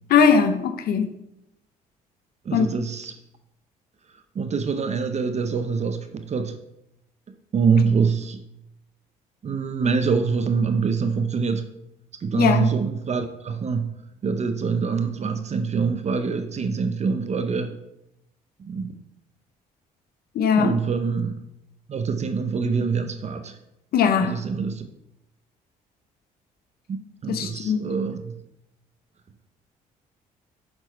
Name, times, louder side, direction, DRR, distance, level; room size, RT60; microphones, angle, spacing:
voice 1, 0.1-1.2 2.5-2.7 12.3-12.7 20.3-20.7 23.9-24.3 27.3-27.8, left 6 dB, 70° left, 8 dB, 0.7 m, -20 dB
voice 2, 2.4-3.1 4.3-6.6 7.5-8.4 9.4-11.7 12.2-17.8 18.6-18.9 20.6-21.4 21.9-23.6 24.2-24.9 26.9-28.3, right 5 dB, 45° right, 8 dB, 0.7 m, -25 dB
7.1 x 4.3 x 4.5 m, 0.82 s
supercardioid pair, 70°, 16 cm